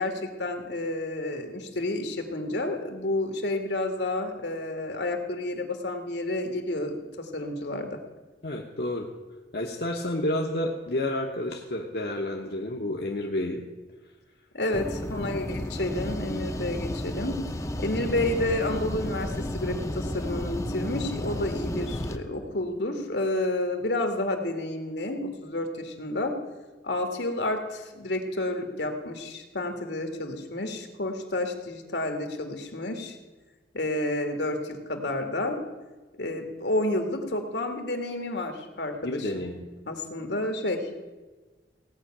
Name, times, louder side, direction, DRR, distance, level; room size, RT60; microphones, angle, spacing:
voice 1, 0.0-8.0 14.5-17.4 17.8-26.3 26.8-33.2 33.7-35.6 36.2-39.3 39.9-40.9, left 1 dB, 80° left, 5 dB, 1.8 m, -30 dB
voice 2, 8.4-9.1 9.5-13.6 39.0-39.6, left 1 dB, 60° left, 0 dB, 1.1 m, -30 dB
sound 1, 14.7-22.2, left 1 dB, 20° left, 0.7 m, -32 dB
17.0 x 5.7 x 8.8 m, 1.3 s
head